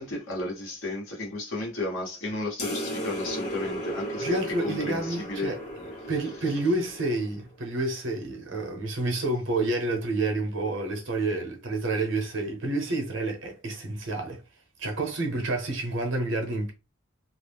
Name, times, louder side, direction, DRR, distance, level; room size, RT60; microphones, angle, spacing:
voice 1, 0.0-5.5 6.5-6.6, left 2 dB, 65° left, 1.1 m, -33 dB
sound 1, 2.6-7.5, equal, 30° left, 1.0 m, -35 dB
voice 2, 4.2-14.4 14.8-16.7, right 2 dB, 60° right, 0.7 m, -29 dB
2.4 x 2.0 x 3.3 m
head